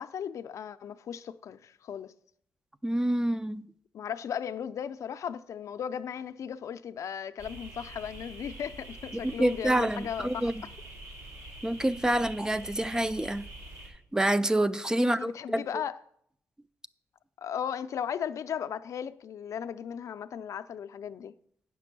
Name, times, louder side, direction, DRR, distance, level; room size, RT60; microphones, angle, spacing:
voice 1, 0.0-2.1 3.9-10.5 15.0-16.0 17.4-21.3, left 8 dB, 70° left, 0.5 m, -36 dB
voice 2, 2.8-3.7 9.2-10.5 11.6-13.4 14.1-15.6, right 1 dB, 10° right, 0.4 m, -27 dB
sound 1, 7.4-13.9, right 1 dB, 85° right, 4.2 m, -46 dB
9.1 x 6.0 x 6.0 m
cardioid pair, 90°, 6 cm